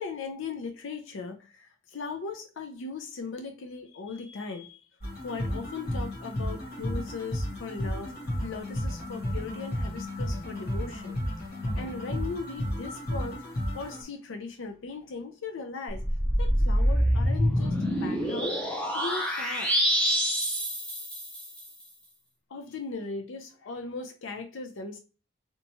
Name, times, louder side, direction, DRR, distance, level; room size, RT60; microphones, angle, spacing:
voice 1, 0.0-4.8 5.2-8.1 8.4-11.2 11.7-13.4 13.7-16.0 16.4-18.6 18.9-19.7 22.5-25.0, left 4 dB, 75° left, 0.4 m, -38 dB
sound 1, 5.0-14.0, left 1 dB, 50° left, 0.9 m, -33 dB
sound 2, 15.9-21.7, equal, 5° left, 0.4 m, -26 dB
2.9 x 2.2 x 2.7 m
head